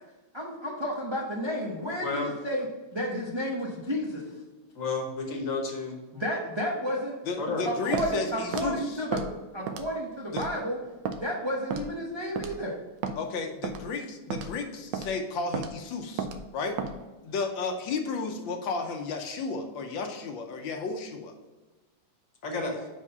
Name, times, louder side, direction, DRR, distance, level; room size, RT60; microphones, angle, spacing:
voice 1, 0.3-2.7 2.9-4.2 6.1-7.1 7.6-9.2 9.5-10.8 11.1-12.8, equal, 35° right, -3 dB, 0.4 m, -31 dB
voice 2, 2.0-2.3 4.7-6.0 7.4-7.6 22.4-22.9, left 3 dB, 50° left, 2 dB, 1.3 m, -31 dB
voice 3, 7.3-9.0 10.3-10.5 13.2-16.3 16.5-16.8 17.2-21.3, left 4 dB, 75° left, 5 dB, 1.4 m, -33 dB
Walk footsteps, 7.9-8.1 8.5-8.7 9.1-9.3 9.7-10.0 10.4-10.5 11.0-11.2 11.7-11.9 12.4-12.6 13.0-13.2 13.6-13.8 14.3-14.5 14.9-15.1 15.5-15.7 16.2-16.4 16.8-16.9, right 6 dB, 75° right, 1.2 m, -32 dB
5.3 x 4.9 x 5.4 m, 1.2 s
omnidirectional pair, 2.2 m